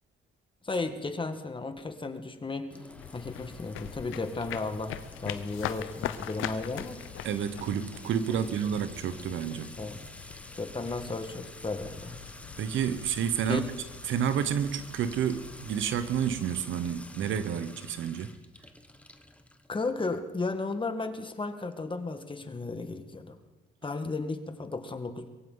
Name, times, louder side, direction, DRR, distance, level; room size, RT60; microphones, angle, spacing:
voice 1, 0.6-2.7 3.1-7.0 8.3-8.5 9.8-10.1 10.6-12.2 13.5-13.7 19.7-23.4 23.8-25.3, left 3 dB, 25° left, 8 dB, 1.5 m, -34 dB
Sink (filling or washing) / Trickle dribble / Fill (with liquid), 2.7-20.1, left 1 dB, 5° left, 1.1 m, -49 dB
sound 1, 2.9-18.1, left 12 dB, 90° left, 0.7 m, -43 dB
voice 2, 7.2-9.7 12.6-13.6 14.1-18.3, right 8 dB, 75° right, 12 dB, 1.0 m, -30 dB
22.5 x 16.0 x 3.9 m, 1.2 s
cardioid pair, 90°, 20 cm